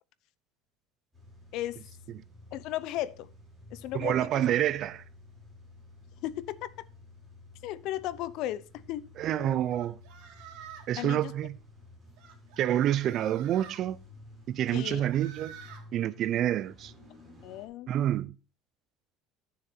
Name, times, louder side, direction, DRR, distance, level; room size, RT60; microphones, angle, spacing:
Car / Engine starting / Idling, 1.1-17.7, left 2 dB, 10° right, 5.1 m, -53 dB
voice 1, 2.5-3.3 3.7-4.4 6.2-6.7 7.6-9.1 9.4-9.6 11.0-11.3 14.7-15.1 17.4-17.9, left 14 dB, 55° left, 0.6 m, -35 dB
voice 2, 3.9-5.0 9.2-10.0 10.9-11.6 12.6-14.0 14.5-15.6 15.9-16.9 17.9-18.3, right 11 dB, 40° right, 0.4 m, -28 dB
sound 1, 9.7-11.0 12.2-13.8 14.7-15.8, right 8 dB, 75° right, 2.8 m, -49 dB
12.5 x 7.0 x 4.3 m
cardioid pair, 170°, 0 cm